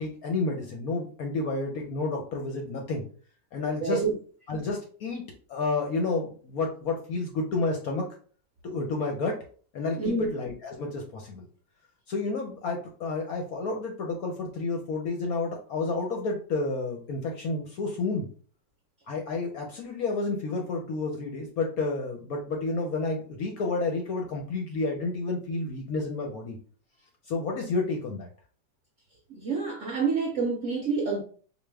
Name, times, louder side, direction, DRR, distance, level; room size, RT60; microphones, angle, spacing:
voice 1, 0.0-3.0 3.5-4.0 4.5-8.1 8.6-9.4 9.7-11.4 12.1-18.3 19.1-26.6 27.3-28.3, left 3 dB, 65° left, 0.9 m, -30 dB
voice 2, 3.8-4.1 10.0-10.3 29.3-31.2, right 4 dB, 65° right, 0.7 m, -27 dB
4.4 x 2.3 x 3.3 m
omnidirectional pair, 2.0 m